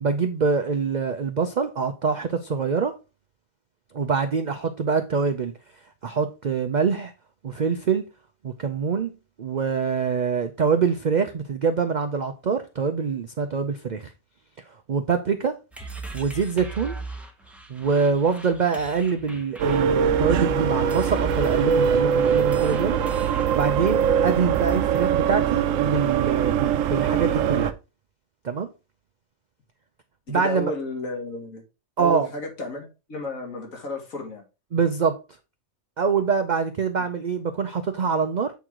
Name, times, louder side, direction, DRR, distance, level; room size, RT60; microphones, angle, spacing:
voice 1, 0.0-2.9 3.9-5.5 6.0-7.1 7.4-8.1 8.4-9.1 9.4-14.1 14.9-15.6 16.1-17.0 17.7-23.0 23.5-27.7 28.4-28.7 30.3-30.7 32.0-32.3 34.7-35.2 36.0-38.5, right 5 dB, 50° right, 0.5 m, -24 dB
sound 1, 15.7-25.2, right 3 dB, ahead, 0.8 m, -38 dB
sound 2, 19.6-27.7, right 8 dB, 75° right, 0.9 m, -22 dB
voice 2, 30.3-31.6 32.0-34.4, left 2 dB, 75° left, 2.3 m, -32 dB
8.2 x 4.6 x 3.7 m
omnidirectional pair, 1.5 m